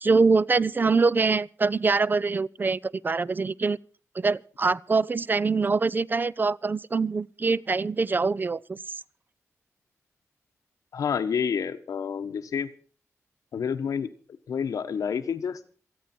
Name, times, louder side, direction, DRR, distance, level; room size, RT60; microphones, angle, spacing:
voice 1, 0.0-3.8 4.2-8.8, right 4 dB, 35° right, 0.6 m, -24 dB
voice 2, 10.9-12.7 13.5-14.1 14.5-15.6, left 7 dB, 85° left, 1.3 m, -29 dB
27.5 x 9.2 x 4.4 m
cardioid pair, 85°, 6 cm